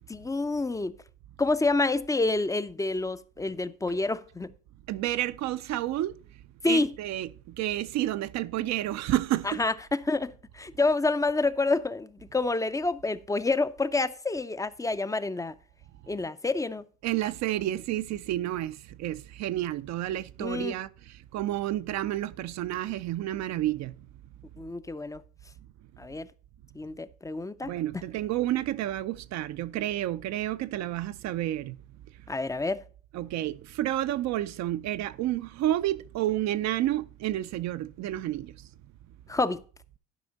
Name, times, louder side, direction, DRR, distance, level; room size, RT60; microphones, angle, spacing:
voice 1, 0.1-0.9 1.4-4.5 6.6-6.9 9.4-15.5 16.1-16.8 20.4-20.7 24.6-25.2 26.0-26.3 26.8-27.7 32.3-32.8 39.3-39.6, left 3 dB, 10° left, 0.4 m, -28 dB
voice 2, 4.9-6.2 6.7-9.6 17.0-23.9 27.6-31.8 33.1-38.7, right 14 dB, 60° right, 0.5 m, -30 dB
11.0 x 4.9 x 4.0 m
supercardioid pair, 75°, 31 cm